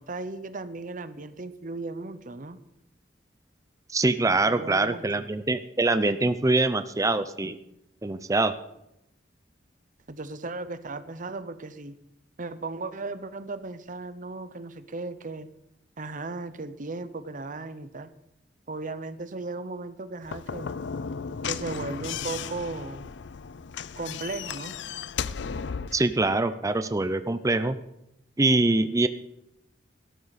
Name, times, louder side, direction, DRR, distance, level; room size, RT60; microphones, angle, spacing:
voice 1, 0.0-2.6 4.3-5.3 10.1-12.0 12.4-15.5 16.0-18.1 18.7-20.8 21.5-23.1 24.0-24.7, right 3 dB, 50° right, 13 dB, 0.9 m, -36 dB
voice 2, 3.9-7.6 8.0-8.5 25.9-27.8 28.4-29.1, right 2 dB, 20° right, 11 dB, 0.5 m, -24 dB
Slam / Knock, 20.2-26.1, left 6 dB, 80° left, 0.5 m, -35 dB
17.0 x 13.5 x 4.2 m, 0.85 s
head